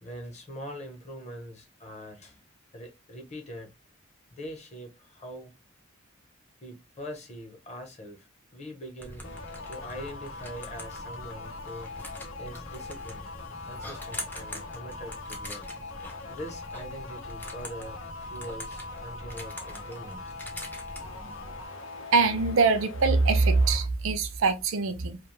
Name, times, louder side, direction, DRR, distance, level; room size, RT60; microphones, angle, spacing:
voice 1, 0.0-2.4 2.7-3.7 4.3-5.5 6.6-9.3 9.6-11.9 12.4-13.3 13.6-15.7 16.3-20.2, equal, 35° left, 0.8 m, -42 dB
sound 1, 9.0-21.7, left 1 dB, 10° left, 0.4 m, -43 dB
sound 2, 9.2-23.9, left 3 dB, 70° left, 0.6 m, -42 dB
voice 2, 22.1-25.2, right 4 dB, 75° right, 0.5 m, -23 dB
2.4 x 2.2 x 3.1 m
head